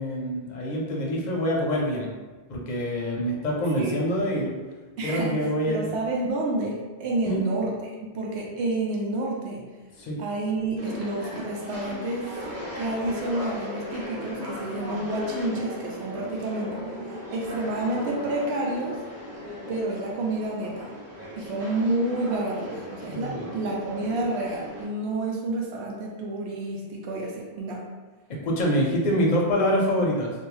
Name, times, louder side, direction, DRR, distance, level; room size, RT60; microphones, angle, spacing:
voice 1, 0.0-2.1 2.5-4.5 5.0-5.9 7.2-7.4 10.0-10.2 23.1-23.5 28.3-30.3, equal, 55° left, -2 dB, 0.6 m, -25 dB
voice 2, 5.0-9.6 10.2-12.3 12.8-16.7 17.3-19.0 19.7-21.0 21.4-27.9, right 2 dB, 90° right, -2 dB, 0.8 m, -29 dB
sound 1, 10.8-24.8, equal, 15° right, 0.7 m, -37 dB
2.3 x 2.2 x 3.1 m, 1.3 s
omnidirectional pair, 1.1 m